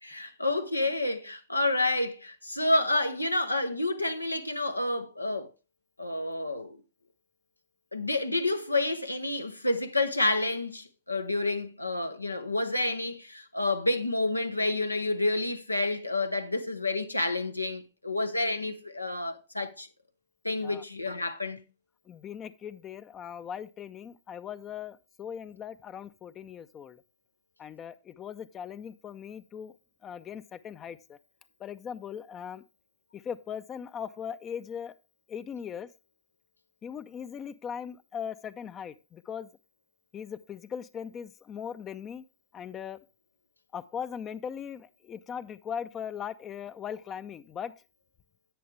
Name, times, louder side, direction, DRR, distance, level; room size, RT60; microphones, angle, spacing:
voice 1, 0.0-5.5 6.0-6.8 7.9-19.9 20.4-21.6, left 2 dB, 85° left, 0.8 m, -29 dB
voice 2, 22.1-27.0 27.6-29.7 30.0-31.2 31.6-32.6 33.1-34.9 35.3-35.9 36.8-39.5 40.1-42.2 42.5-43.0 43.7-47.7, left 8 dB, 25° left, 0.5 m, -39 dB
10.0 x 8.5 x 3.2 m
figure-of-eight pair, 90°, 0 cm